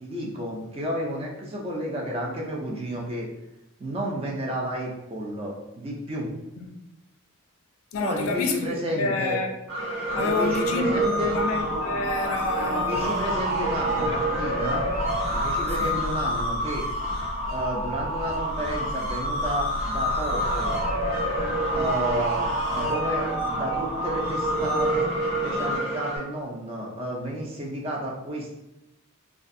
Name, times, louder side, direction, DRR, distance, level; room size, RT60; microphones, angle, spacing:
voice 1, 0.0-3.3 3.8-6.3 8.0-9.4 10.1-11.4 12.7-14.9 15.3-16.9 17.5-20.8 21.7-25.0 25.4-28.5, equal, 25° right, 0.4 m, -31 dB
voice 2, 7.9-9.6 10.1-14.3 15.7-16.0, left 3 dB, 75° left, 0.4 m, -29 dB
sound 1, 9.7-26.2, equal, 65° right, 0.9 m, -27 dB
2.5 x 2.3 x 2.6 m
head